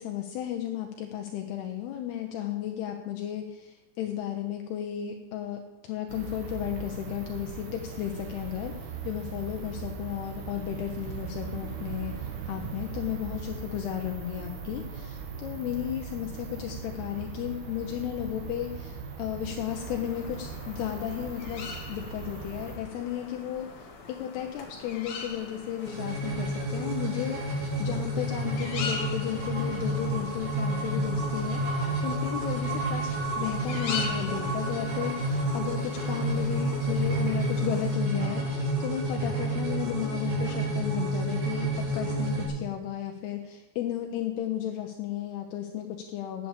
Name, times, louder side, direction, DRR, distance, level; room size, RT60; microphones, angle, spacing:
voice 1, 0.0-46.5, left 11 dB, 80° left, 4 dB, 2.6 m, -34 dB
sound 1, 6.1-22.8, right 6 dB, 70° right, 3.3 m, -39 dB
sound 2, 19.7-38.0, left 4 dB, 60° left, 1.9 m, -42 dB
sound 3, 25.8-42.5, right 1 dB, 45° right, 3.3 m, -30 dB
8.6 x 8.5 x 8.7 m, 1.0 s
omnidirectional pair, 5.0 m